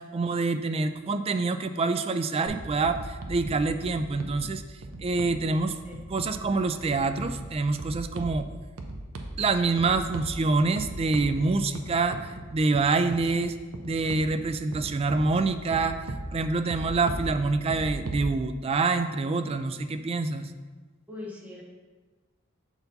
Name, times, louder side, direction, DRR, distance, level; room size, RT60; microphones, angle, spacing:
voice 1, 0.0-4.6 5.0-5.7 6.1-8.5 9.4-13.6 13.8-16.0 16.3-20.5, right 3 dB, 30° right, 9 dB, 0.3 m, -26 dB
sound 1, 2.5-18.3, right 1 dB, 75° right, 0.7 m, -39 dB
voice 2, 21.1-21.6, left 2 dB, 10° right, -3 dB, 1.1 m, -40 dB
6.9 x 4.5 x 3.9 m, 1.3 s
head